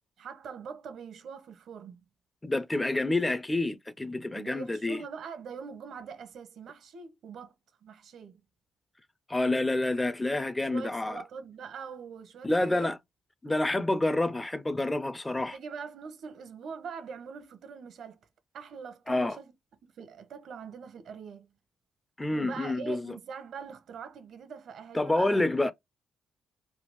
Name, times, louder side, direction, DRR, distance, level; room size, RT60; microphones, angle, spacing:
voice 1, 0.2-2.0 4.3-7.6 7.8-8.4 10.7-12.9 15.5-18.2 18.5-19.5 19.8-21.5 22.3-25.7, right 6 dB, 65° right, 0.8 m, -43 dB
voice 2, 2.4-5.0 9.3-11.2 12.4-13.0 13.4-15.6 19.1-19.4 22.2-23.2 24.9-25.7, left 2 dB, 15° left, 0.4 m, -28 dB
3.4 x 2.3 x 3.0 m
cardioid pair, 90°, 0 cm